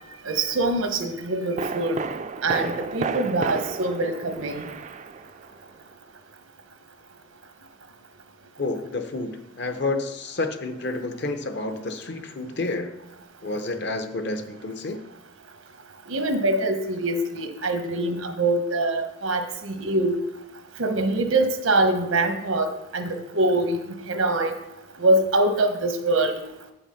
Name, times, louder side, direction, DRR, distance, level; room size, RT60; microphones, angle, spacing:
voice 1, 0.3-2.0 2.4-4.6 16.1-20.1 20.8-23.8 24.1-24.6 25.0-26.3, right 2 dB, 85° right, 6 dB, 1.2 m, -24 dB
sound 1, 0.6-0.8 1.6-5.7 5.9-6.0, right 4 dB, 35° right, 0.4 m, -32 dB
voice 2, 8.6-12.9 13.4-15.0, left 2 dB, 55° left, 8 dB, 0.8 m, -29 dB
8.8 x 5.7 x 5.7 m, 0.90 s
head